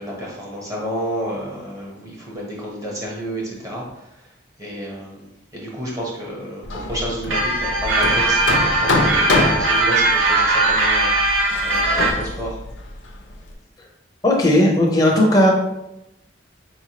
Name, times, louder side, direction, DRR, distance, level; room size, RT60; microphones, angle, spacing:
voice 1, 0.0-4.3 4.6-12.6, equal, 20° right, -4 dB, 0.9 m, -31 dB
Hammer, 6.6-13.5, left 2 dB, 70° left, 0.5 m, -26 dB
sound 1, 7.3-12.1, right 2 dB, 90° right, 0.9 m, -19 dB
voice 2, 14.2-15.5, left 1 dB, 20° left, -2 dB, 0.6 m, -15 dB
4.3 x 3.0 x 2.8 m, 0.89 s
head